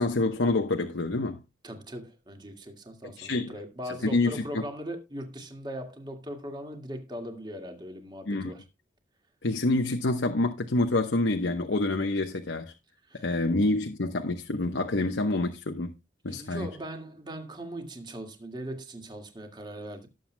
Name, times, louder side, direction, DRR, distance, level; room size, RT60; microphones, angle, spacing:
voice 1, 0.0-1.4 3.2-3.5 4.0-4.3 8.3-8.5 9.4-12.7 13.1-15.9 16.2-16.7, left 2 dB, 85° left, 1.0 m, -27 dB
voice 2, 1.6-8.6 13.0-13.4 16.3-20.1, equal, 25° right, 1.9 m, -40 dB
19.0 x 7.7 x 2.2 m
head